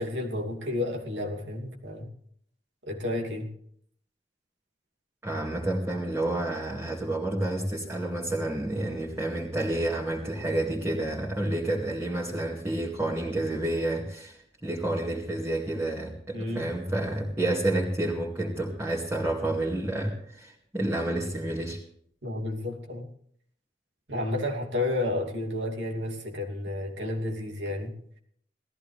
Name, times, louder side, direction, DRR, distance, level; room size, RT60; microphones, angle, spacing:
voice 1, 0.0-2.1 2.8-3.5 16.3-16.7 22.2-23.1 24.1-27.9, left 1 dB, 85° right, 1 dB, 2.7 m, -31 dB
voice 2, 5.2-21.8, right 1 dB, 15° right, -5 dB, 2.3 m, -29 dB
18.5 x 14.5 x 3.3 m, 0.66 s
head